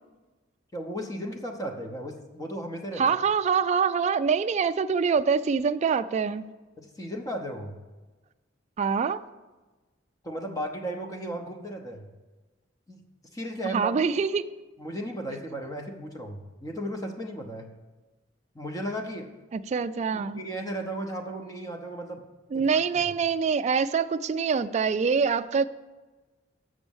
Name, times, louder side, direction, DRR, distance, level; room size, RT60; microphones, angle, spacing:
voice 1, 0.7-3.2 6.8-7.7 10.2-12.1 12.9-13.0 13.3-13.9 14.8-17.7 18.5-19.3 20.1-22.2 22.5-22.7 22.9-23.1, right 1 dB, 20° left, 0.7 m, -35 dB
voice 2, 3.0-6.5 8.8-9.2 13.7-14.5 19.5-20.4 22.5-25.6, right 6 dB, 35° right, 0.3 m, -25 dB
7.3 x 6.2 x 7.0 m
head